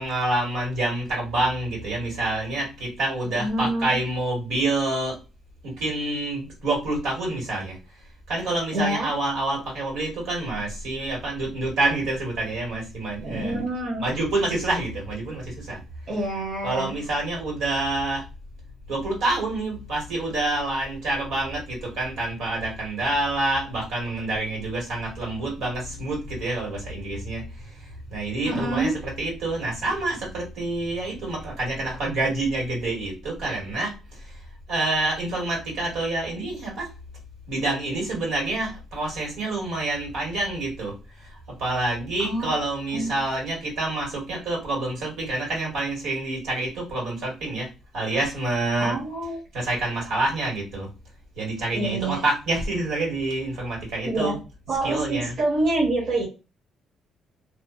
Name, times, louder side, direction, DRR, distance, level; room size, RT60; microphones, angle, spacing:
voice 1, 0.0-5.2 5.6-7.8 8.3-13.6 14.0-15.8 16.6-18.2 18.9-34.3 34.7-36.9 37.5-47.7 47.9-49.0 49.5-50.9 51.4-54.3 54.8-55.3, right 2 dB, 85° right, -2 dB, 1.6 m, -27 dB
voice 2, 3.3-3.9 8.7-9.1 13.2-14.1 16.1-17.0 28.4-29.1 42.2-42.5 42.9-43.2 48.8-49.4 51.7-52.2 54.1-54.4 54.7-56.2, right 2 dB, 65° right, -4 dB, 1.1 m, -27 dB
2.6 x 2.3 x 2.6 m, 0.29 s
cardioid pair, 90°, 0 cm